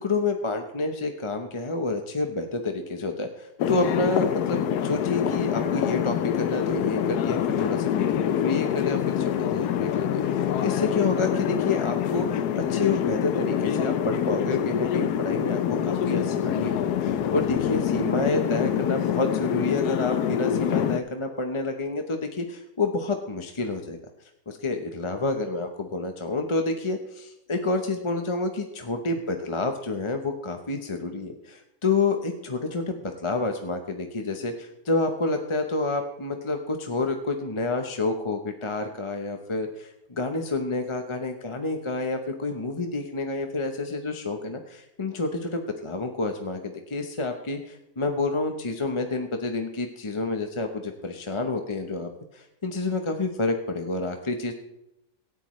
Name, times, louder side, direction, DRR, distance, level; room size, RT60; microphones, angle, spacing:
voice 1, 0.0-24.0 24.5-54.5, left 3 dB, 25° left, 5 dB, 0.7 m, -29 dB
sound 1, 3.6-21.0, left 9 dB, 85° left, 1.2 m, -25 dB
17.5 x 13.0 x 3.2 m, 0.87 s
omnidirectional pair, 1.7 m